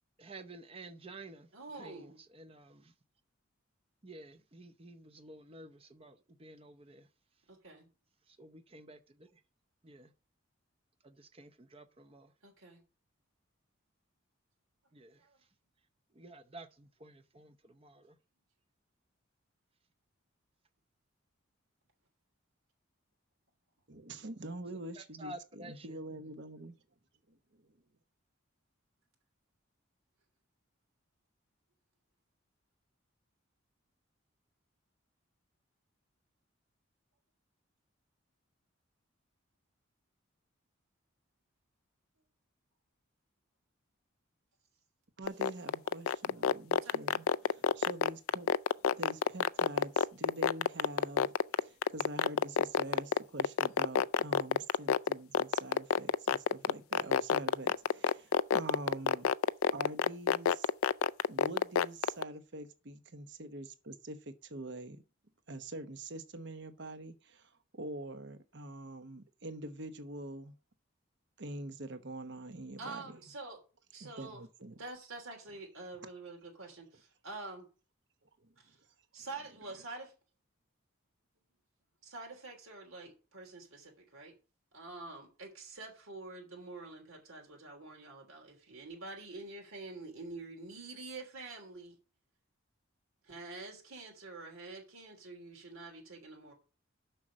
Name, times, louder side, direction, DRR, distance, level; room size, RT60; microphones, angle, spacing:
voice 1, 0.2-1.5 1.8-2.9 4.0-7.1 8.3-9.4 9.8-10.1 11.0-12.3 14.9-15.2 16.1-18.2 24.6-24.7 25.0-25.9, right 2 dB, 30° right, 0.7 m, -51 dB
voice 2, 1.5-2.2 7.5-7.9 12.4-12.8 15.2-15.4 46.7-47.0 72.8-73.6 73.9-74.4 74.8-77.6 78.6-78.8 79.1-80.1 82.0-84.3 84.7-92.0 93.2-96.5, right 3 dB, 90° right, 3.2 m, -47 dB
voice 3, 23.9-26.8 27.3-27.8 45.2-48.5 48.9-59.3 59.7-60.7 61.3-65.0 65.5-70.5 71.4-73.2 74.0-74.7 78.4-78.5, right 2 dB, 55° right, 1.0 m, -45 dB
sound 1, 45.3-62.2, left 7 dB, 85° left, 0.4 m, -27 dB
6.9 x 6.3 x 7.6 m
head